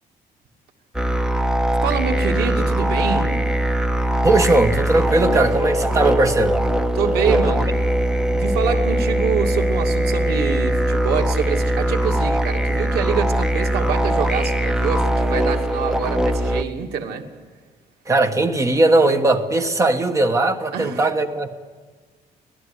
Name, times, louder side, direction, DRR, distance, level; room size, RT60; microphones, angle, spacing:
sound 1, 0.9-16.6, right 1 dB, 5° right, 0.7 m, -21 dB
voice 1, 1.8-3.5 6.9-7.7 8.3-17.3 20.7-21.0, right 6 dB, 85° right, 3 dB, 2.6 m, -25 dB
voice 2, 4.2-6.6 18.1-21.5, right 2 dB, 20° right, 8 dB, 1.4 m, -18 dB
25.0 x 18.0 x 9.9 m, 1.5 s
cardioid pair, 175°, 16 cm